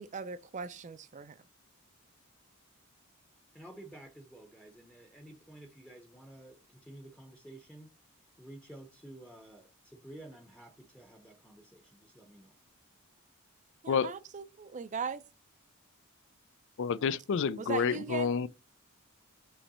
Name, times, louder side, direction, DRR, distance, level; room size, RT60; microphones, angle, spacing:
voice 1, 0.0-1.4 13.8-15.2 17.6-18.3, right 6 dB, 35° right, 0.4 m, -39 dB
voice 2, 3.5-7.9 8.4-12.6, right 1 dB, 5° left, 0.8 m, -51 dB
voice 3, 16.8-18.5, left 6 dB, 60° left, 0.4 m, -29 dB
5.6 x 3.2 x 5.4 m
head